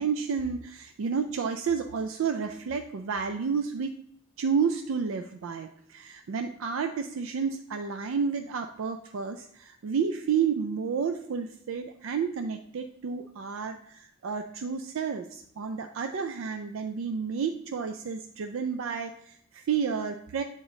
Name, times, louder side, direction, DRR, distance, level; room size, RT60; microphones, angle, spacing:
voice 1, 0.0-3.9 4.4-20.4, right 6 dB, 85° right, 6 dB, 0.4 m, -31 dB
7.9 x 3.8 x 3.8 m, 0.69 s
head